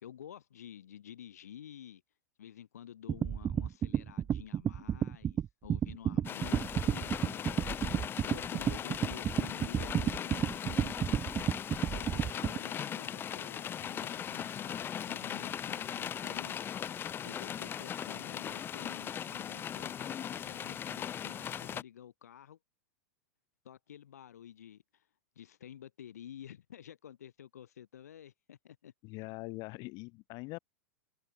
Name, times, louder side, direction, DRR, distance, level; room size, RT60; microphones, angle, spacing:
voice 1, 0.0-2.0 2.4-8.0 8.3-11.0 11.9-22.6 23.6-25.0 25.3-28.9, left 10 dB, 80° left, 4.8 m, -51 dB
sound 1, 3.1-12.6, right 9 dB, 30° right, 2.4 m, -31 dB
sound 2, 6.2-21.8, left 9 dB, 25° left, 1.0 m, -39 dB
voice 2, 29.0-30.6, left 26 dB, 50° left, 2.3 m, -42 dB
hypercardioid pair, 105°, 8 cm